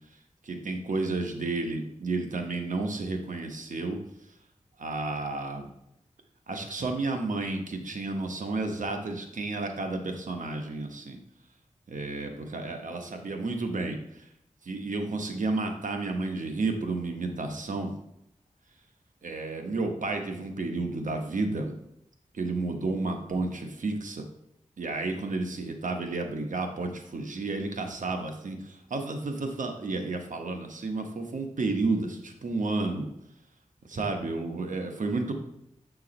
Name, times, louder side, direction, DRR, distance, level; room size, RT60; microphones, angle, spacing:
voice 1, 0.4-4.0 4.8-5.7 6.5-11.2 11.9-14.0 14.7-17.9 19.2-21.7 22.3-24.2 24.8-33.1 33.9-35.3, right 3 dB, 85° right, 4 dB, 1.0 m, -31 dB
7.7 x 4.6 x 4.3 m, 0.78 s
wide cardioid pair, 55°, 13 cm